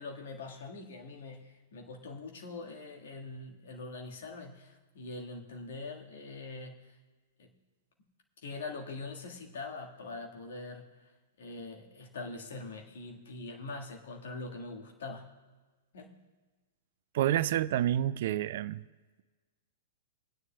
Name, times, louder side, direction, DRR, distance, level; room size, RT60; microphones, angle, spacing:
voice 1, 0.0-6.9 7.4-7.5 8.4-11.1 11.4-15.3 15.9-16.2, left 3 dB, 55° left, 1 dB, 1.6 m, -43 dB
voice 2, 17.1-18.8, right 12 dB, 50° right, 18 dB, 0.3 m, -28 dB
23.5 x 9.7 x 2.2 m, 1.3 s
figure-of-eight pair, 105°, 0 cm